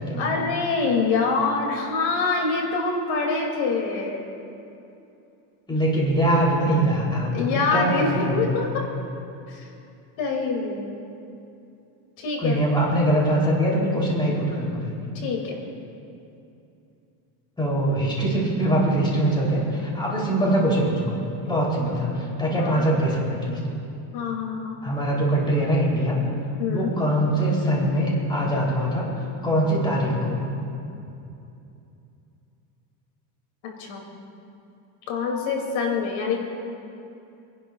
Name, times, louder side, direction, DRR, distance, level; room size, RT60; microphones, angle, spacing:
voice 1, 0.2-4.2 7.3-8.8 9.5-9.7 10.2-10.9 12.2-12.6 15.1-15.6 20.4-20.7 22.6-22.8 24.1-24.8 26.6-26.9 33.8-34.1 35.1-36.4, left 4 dB, 65° left, 0 dB, 2.6 m, -25 dB
voice 2, 5.7-8.5 12.4-14.8 17.6-21.2 21.4-23.6 24.8-26.2 26.7-29.1 29.4-30.4, right 1 dB, 10° left, -4 dB, 3.1 m, -23 dB
26.5 x 11.0 x 2.4 m, 2.7 s
cardioid pair, 140°, 49 cm